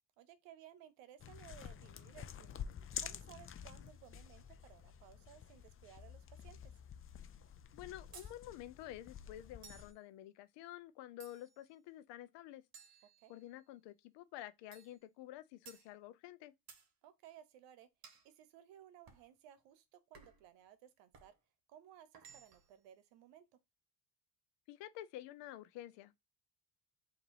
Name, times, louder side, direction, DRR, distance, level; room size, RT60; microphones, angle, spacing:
voice 1, 0.2-2.6 3.0-6.7 13.2-13.3 17.0-17.9 18.2-21.3 21.7-23.5, right 10 dB, 85° right, 0.9 m, -59 dB
sound 1, 1.2-9.9, left 8 dB, 30° left, 0.5 m, -49 dB
voice 2, 7.7-12.6 13.3-16.5 24.7-26.2, left 13 dB, 75° left, 0.7 m, -50 dB
sound 2, 8.1-8.4 9.6-10.0 11.2-11.7 12.7-13.6 14.7-15.0 15.7-15.9 16.7-16.9 18.0-18.3 19.1-19.3 20.1-20.5 21.1-21.4 22.1-22.7, right 7 dB, 55° right, 1.3 m, -58 dB
3.9 x 2.8 x 4.6 m
supercardioid pair, 85°, 43 cm